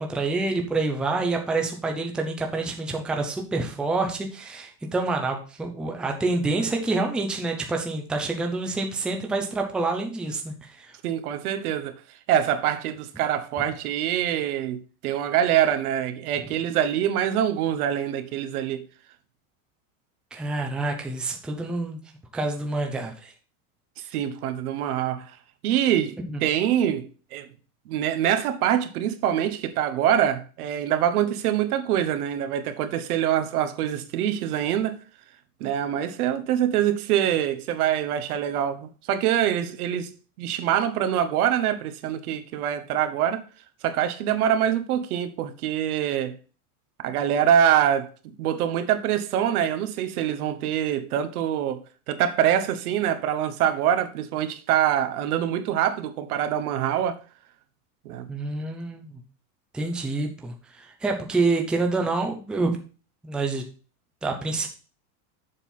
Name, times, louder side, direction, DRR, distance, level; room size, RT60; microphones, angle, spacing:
voice 1, 0.0-10.9 20.3-22.0 22.3-23.3 26.3-26.4 58.3-59.2 59.7-62.8 63.2-63.6 64.2-64.7, right 3 dB, ahead, 0.5 m, -27 dB
voice 2, 11.0-12.0 12.3-18.9 24.1-25.3 25.6-27.5 27.9-35.0 35.6-40.1 40.4-43.4 43.8-46.3 47.0-57.2 58.0-58.3, right 10 dB, 90° right, 1.2 m, -24 dB
7.2 x 4.3 x 5.4 m
supercardioid pair, 165°, 43 cm